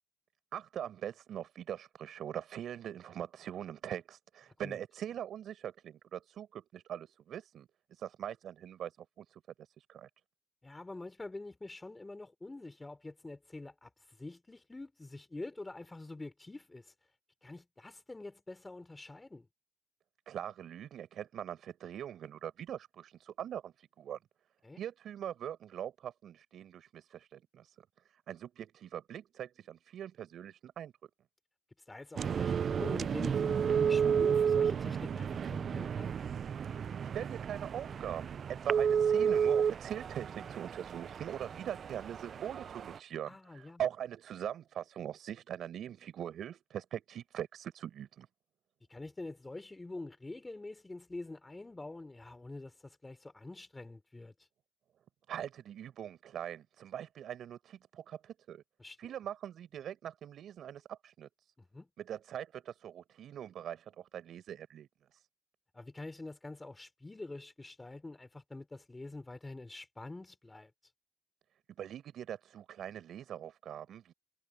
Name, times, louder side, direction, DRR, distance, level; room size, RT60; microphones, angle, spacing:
voice 1, 0.5-10.1 20.3-24.2 24.8-27.8 28.1-30.9 37.0-48.3 55.3-58.6 59.0-61.5 62.0-65.3 71.8-74.1, right 10 dB, 70° right, 6.4 m, -42 dB
voice 2, 10.6-16.9 17.4-19.5 24.6-24.8 31.8-36.2 43.3-43.8 48.9-54.5 58.8-59.1 61.6-61.9 65.7-70.9, left 2 dB, 20° left, 4.2 m, -46 dB
sound 1, 32.2-43.0, right 7 dB, 55° right, 0.3 m, -32 dB
cardioid pair, 90°, 0 cm